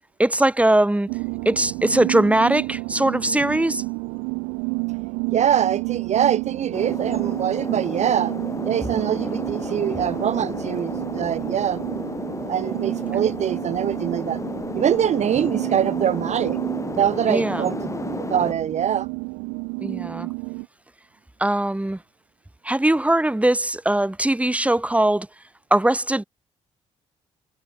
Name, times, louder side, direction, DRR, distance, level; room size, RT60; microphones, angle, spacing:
voice 1, 0.2-1.1 1.5-3.8 11.2-11.3 17.3-17.7 19.8-20.3 21.4-22.0 22.6-25.3 25.7-26.2, right 1 dB, 10° right, 1.9 m, -20 dB
sound 1, 1.1-20.7, right 40 dB or more, 90° right, 0.4 m, -30 dB
voice 2, 5.3-8.3 8.6-11.8 12.5-14.4 14.7-16.6 16.9-17.8 18.3-19.1, right 9 dB, 50° right, 0.7 m, -23 dB
sound 2, 6.7-18.5, left 3 dB, 20° left, 1.2 m, -33 dB
hypercardioid pair, 55°, 14 cm